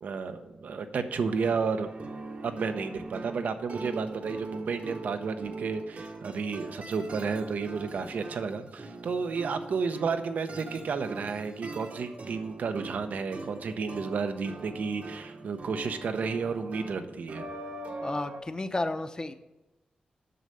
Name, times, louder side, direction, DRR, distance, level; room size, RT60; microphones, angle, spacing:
voice 1, 0.0-1.9 2.4-17.5, right 5 dB, 85° right, 8 dB, 0.8 m, -32 dB
sound 1, 1.3-18.4, right 3 dB, 60° right, 1.2 m, -42 dB
voice 2, 18.0-19.3, left 2 dB, 30° left, 10 dB, 0.7 m, -32 dB
7.9 x 6.5 x 6.8 m, 0.99 s
cardioid pair, 80°, 3 cm